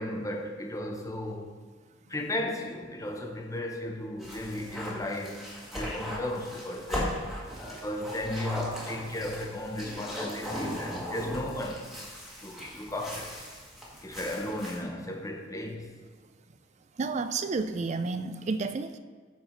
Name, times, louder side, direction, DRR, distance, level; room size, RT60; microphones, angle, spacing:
voice 1, 0.0-1.5 2.1-7.2 7.7-11.9 12.4-13.4 14.0-15.9, left 1 dB, 15° left, 2 dB, 0.8 m, -35 dB
sound 1, 4.2-14.8, left 1 dB, ahead, 1.6 m, -38 dB
voice 2, 17.0-19.0, right 4 dB, 35° right, 10 dB, 0.4 m, -31 dB
13.0 x 4.7 x 4.4 m, 1.5 s
head